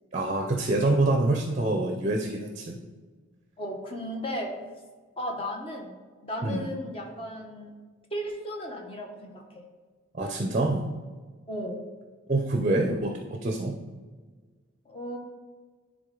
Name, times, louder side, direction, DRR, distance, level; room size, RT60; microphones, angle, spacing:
voice 1, 0.1-2.8 6.4-6.7 10.1-10.8 12.3-13.8, right 2 dB, 35° right, 3 dB, 0.6 m, -26 dB
voice 2, 3.6-4.6 5.2-6.0 6.2-7.7 8.1-9.6 11.5-11.8 14.8-15.2, equal, 25° left, 0 dB, 1.2 m, -35 dB
10.5 x 3.7 x 3.8 m, 1.4 s
head